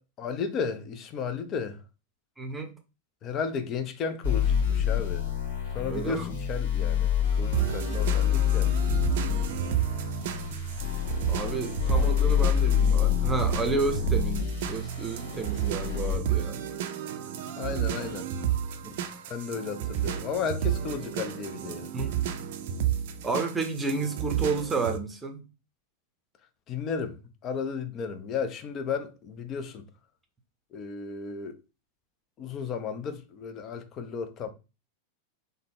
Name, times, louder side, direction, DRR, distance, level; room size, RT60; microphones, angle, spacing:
voice 1, 0.2-1.8 3.2-5.3 5.7-8.7 17.6-18.3 18.9-19.0 19.3-21.9 26.7-29.8 30.7-31.5 32.4-34.5, left 6 dB, 35° left, 0.5 m, -34 dB
voice 2, 2.4-2.7 5.9-6.3 11.3-16.6 18.8-18.9 21.9-22.2 23.2-25.4, right 4 dB, 10° right, 0.8 m, -31 dB
sound 1, 4.2-16.2, left 8 dB, 60° left, 1.4 m, -27 dB
sound 2, 7.5-25.0, right 10 dB, 55° right, 0.4 m, -32 dB
3.6 x 2.2 x 3.5 m
figure-of-eight pair, 90°, 0 cm